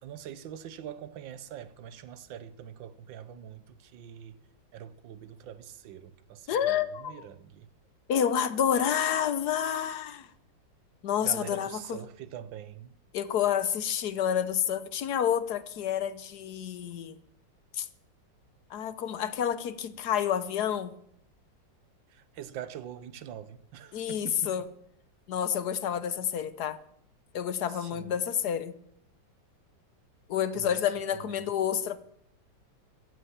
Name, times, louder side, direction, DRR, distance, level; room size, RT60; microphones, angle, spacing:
voice 1, 0.0-4.4 4.7-7.7 11.2-13.0 22.1-24.6 27.7-28.1 30.6-30.8 31.1-31.5, right 9 dB, 85° right, 1.6 m, -44 dB
voice 2, 6.5-7.3 8.1-10.3 11.0-12.0 13.1-17.2 17.7-17.9 18.7-20.9 23.9-24.6 25.3-26.8 27.3-28.7 30.3-32.0, left 9 dB, 65° left, 1.4 m, -29 dB
15.0 x 10.0 x 7.2 m
omnidirectional pair, 2.0 m